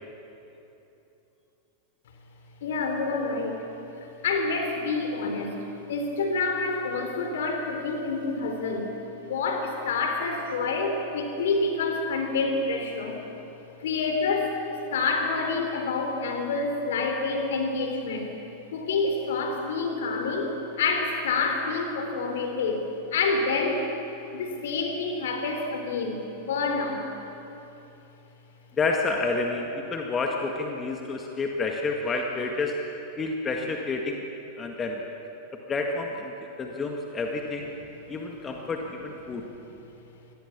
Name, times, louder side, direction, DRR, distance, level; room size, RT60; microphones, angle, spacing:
voice 1, 2.6-3.6 4.0-5.6 5.9-8.9 9.2-13.2 13.8-18.3 18.7-23.9 24.3-27.1, left 3 dB, 60° left, 4 dB, 3.5 m, -28 dB
voice 2, 28.8-32.8 33.2-34.2 34.6-35.0 35.7-37.7 38.1-39.5, left 3 dB, 20° left, 2 dB, 1.8 m, -29 dB
25.0 x 18.0 x 7.2 m, 3.0 s
figure-of-eight pair, 90°, 0 cm